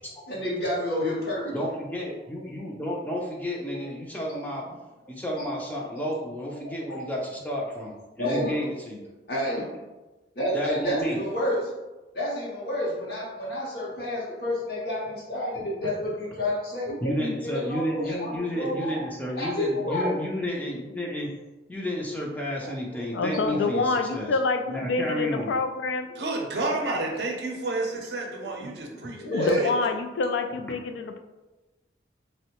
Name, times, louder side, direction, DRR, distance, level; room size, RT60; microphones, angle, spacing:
voice 1, 0.3-1.7 3.7-3.9 5.4-5.5 5.9-6.0 6.6-7.1 8.2-8.6 9.3-9.7 10.4-11.7 12.1-19.0 19.3-20.2 22.6-22.7 23.2-23.4 25.0-25.1 28.4-29.7, left 1 dB, 60° left, -6 dB, 0.7 m, -30 dB
voice 2, 1.5-4.7 5.1-9.0 10.5-11.2 17.0-21.3 21.7-24.3 24.7-25.5, equal, 10° left, -2 dB, 0.4 m, -31 dB
voice 3, 23.1-26.1 29.3-31.2, left 3 dB, 85° left, 6 dB, 0.3 m, -27 dB
voice 4, 26.2-29.7, right 2 dB, 70° right, 0 dB, 0.5 m, -30 dB
3.5 x 2.1 x 2.8 m, 1.1 s
head